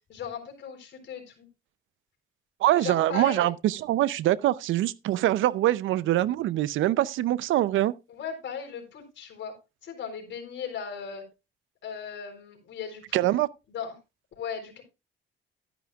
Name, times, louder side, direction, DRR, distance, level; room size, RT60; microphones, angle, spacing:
voice 1, 0.1-1.5 2.8-3.5 8.1-9.6 9.8-11.2 11.8-13.2 13.7-14.0 14.4-14.8, left 7 dB, 70° left, 3.8 m, -37 dB
voice 2, 2.6-7.9 13.1-13.5, right 14 dB, 80° right, 0.6 m, -24 dB
12.0 x 10.5 x 2.4 m
cardioid pair, 90°, 20 cm